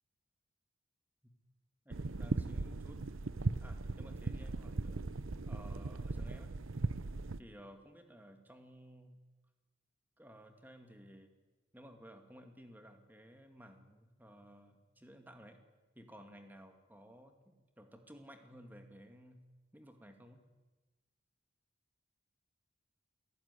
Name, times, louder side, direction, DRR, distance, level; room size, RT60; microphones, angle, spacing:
voice 1, 1.9-3.0 3.6-5.0 5.5-6.5 7.4-9.2 10.2-11.3 11.7-15.6 15.9-19.5 19.7-20.4, equal, 10° right, 6 dB, 2.2 m, -56 dB
sound 1, 1.9-7.4, right 3 dB, 75° right, 0.8 m, -38 dB
28.5 x 17.5 x 9.8 m, 1.2 s
head